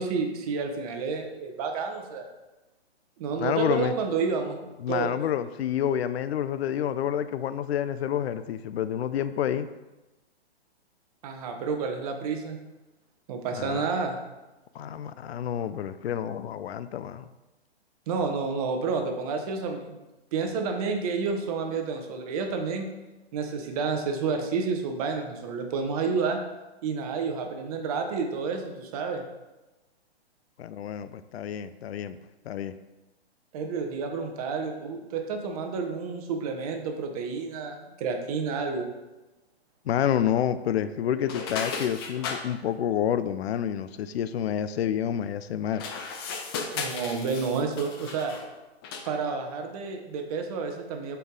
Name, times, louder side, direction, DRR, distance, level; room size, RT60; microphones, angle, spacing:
voice 1, 0.0-2.2 3.2-4.6 4.9-5.2 11.2-12.6 13.3-14.2 18.1-20.0 20.3-22.9 23.3-26.4 26.8-29.2 33.5-38.9 46.7-48.3 49.1-51.2, right 5 dB, 35° right, 4 dB, 0.9 m, -30 dB
voice 2, 3.4-3.9 4.8-9.7 13.5-13.9 14.7-17.3 30.6-32.2 32.5-32.8 39.9-45.8, left 10 dB, 70° left, 13 dB, 0.5 m, -28 dB
sound 1, 41.2-42.4 45.7-48.5 48.8-49.2, left 5 dB, 25° left, 0.5 m, -35 dB
6.6 x 4.6 x 3.7 m, 1.1 s
hypercardioid pair, 145°, 32 cm